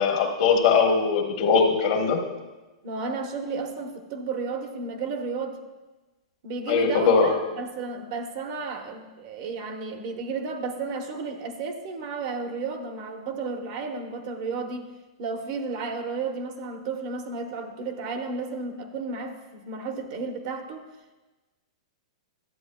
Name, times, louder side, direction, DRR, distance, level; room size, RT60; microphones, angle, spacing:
voice 1, 0.0-2.2 6.7-7.3, left 5 dB, 55° left, 3 dB, 1.2 m, -21 dB
voice 2, 2.8-5.6 6.4-14.9 15.2-20.9, right 4 dB, 50° right, 5 dB, 1.0 m, -33 dB
11.5 x 7.8 x 2.3 m, 1.1 s
hypercardioid pair, 130°, 3 cm